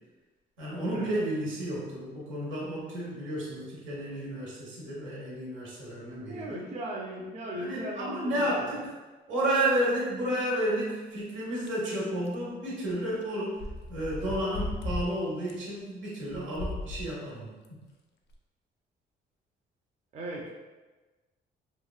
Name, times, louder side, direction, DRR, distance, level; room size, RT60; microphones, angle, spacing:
voice 1, 0.6-6.6 7.5-8.9 9.3-13.6 13.9-17.5, right 1 dB, 75° right, -5 dB, 1.0 m, -31 dB
voice 2, 6.3-8.7 20.1-20.5, right 1 dB, 35° right, -4 dB, 0.5 m, -38 dB
sound 1, 11.7-11.8 12.3-12.4 13.2-13.3 13.6-15.1 15.5-15.6 16.3-17.1 17.6-17.7 18.3-18.4, left 2 dB, 60° left, 0.4 m, -35 dB
2.9 x 2.2 x 2.3 m, 1.2 s
cardioid pair, 90°, 20 cm